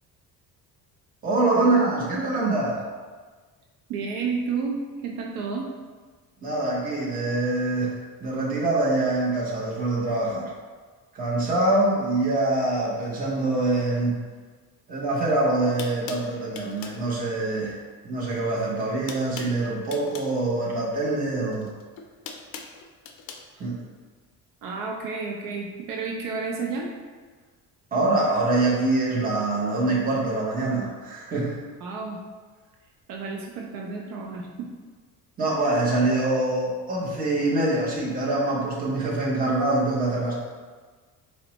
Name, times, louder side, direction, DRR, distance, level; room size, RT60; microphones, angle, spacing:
voice 1, 1.2-2.8 6.4-10.5 11.1-14.2 14.9-17.8 18.0-21.7 23.6-23.8 27.9-31.6 35.4-40.3, right 2 dB, 25° right, -5 dB, 0.7 m, -24 dB
voice 2, 3.9-5.7 24.6-26.9 31.8-32.2 33.1-34.7, right 4 dB, 70° right, 0 dB, 0.5 m, -31 dB
sound 1, 15.3-15.4 15.8-17.0 18.2-18.5 18.8-20.3 21.5-23.4, left 6 dB, 75° left, 0.5 m, -40 dB
4.3 x 2.0 x 2.9 m, 1.4 s
cardioid pair, 155°, 34 cm